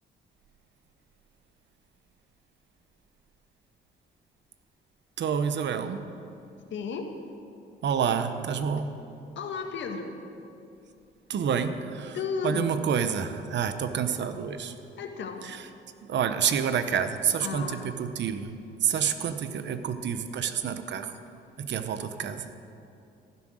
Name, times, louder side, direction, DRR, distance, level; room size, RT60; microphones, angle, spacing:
voice 1, 5.2-6.1 7.8-8.9 11.3-12.2 12.4-14.7 15.5-15.6 16.1-18.5 18.8-21.1 21.6-22.4, right 7 dB, 65° right, 10 dB, 1.0 m, -28 dB
voice 2, 6.7-7.1 9.4-10.2 12.1-12.8 15.0-15.6 17.4-17.9, left 5 dB, 70° left, 4 dB, 1.7 m, -34 dB
15.0 x 11.5 x 6.5 m, 2.6 s
cardioid pair, 90°, 20 cm